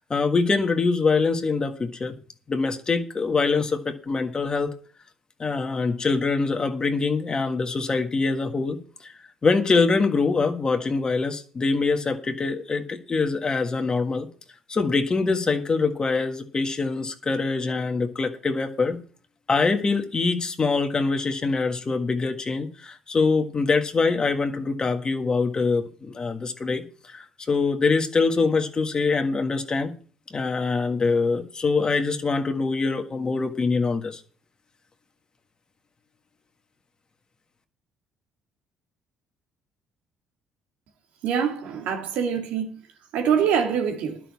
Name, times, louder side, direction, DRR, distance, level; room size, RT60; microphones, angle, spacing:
voice 1, 0.1-2.1 2.5-4.7 5.4-9.1 9.4-14.3 14.7-19.0 19.5-29.9 30.3-34.2, left 4 dB, 35° left, 1.6 m, -24 dB
voice 2, 41.2-42.7 43.1-44.2, right 7 dB, 75° right, 2.3 m, -24 dB
11.0 x 6.2 x 8.3 m
supercardioid pair, 70°, 2 cm